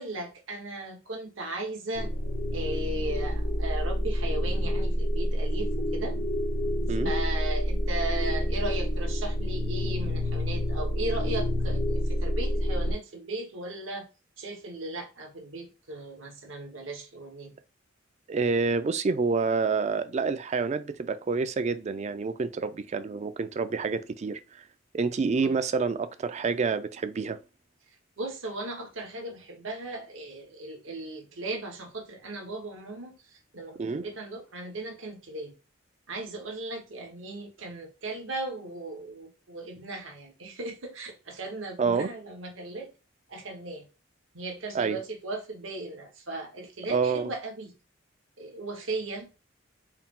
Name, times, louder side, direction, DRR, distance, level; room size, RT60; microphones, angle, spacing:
voice 1, 0.0-2.1 2.5-6.2 7.0-14.1 14.4-17.5 25.4-25.5 28.2-35.5 36.1-42.9 43.3-43.9 44.3-47.7 48.4-49.3, right 2 dB, 80° right, 1.1 m, -37 dB
sound 1, 1.9-12.9, equal, 90° left, 0.8 m, -28 dB
voice 2, 18.3-24.4 24.9-27.4 33.8-34.1 41.8-42.1 44.7-45.0 46.9-47.3, right 4 dB, 35° right, 0.3 m, -28 dB
4.5 x 2.0 x 3.6 m
head